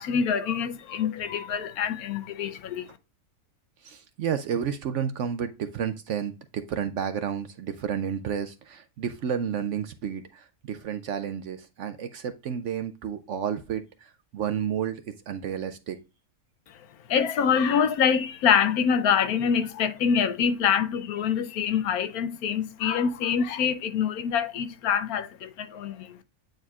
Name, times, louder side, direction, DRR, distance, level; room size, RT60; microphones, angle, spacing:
voice 1, 0.0-2.9 17.1-26.2, left 7 dB, 75° left, 1.1 m, -25 dB
voice 2, 3.8-16.0, right 8 dB, 65° right, 0.8 m, -31 dB
9.0 x 4.4 x 2.4 m
omnidirectional pair, 1.6 m